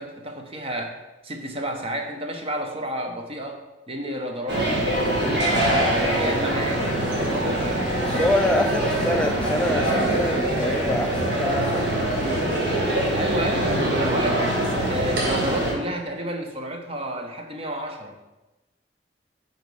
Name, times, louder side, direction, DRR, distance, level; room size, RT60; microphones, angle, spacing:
voice 1, 0.0-6.9 7.1-8.3 8.8-8.9 13.1-18.2, right 1 dB, 35° right, 3 dB, 1.0 m, -31 dB
sound 1, 4.5-15.7, right 1 dB, 70° right, 1.8 m, -23 dB
voice 2, 8.0-12.4, left 1 dB, 5° left, 2 dB, 0.3 m, -26 dB
8.2 x 4.2 x 4.9 m, 1.0 s
head